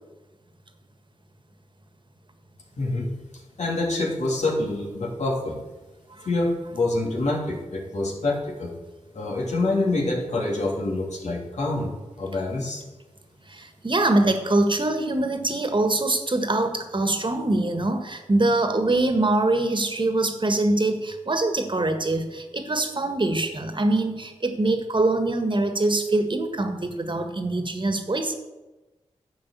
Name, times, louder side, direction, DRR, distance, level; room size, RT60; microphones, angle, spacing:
voice 1, 2.8-3.1 3.6-5.6 6.2-8.7 9.1-12.8, left 2 dB, 75° left, -1 dB, 2.7 m, -26 dB
voice 2, 13.5-28.3, right 2 dB, 45° right, 7 dB, 1.6 m, -23 dB
11.0 x 5.3 x 8.4 m, 1.1 s
cardioid pair, 50°, 12 cm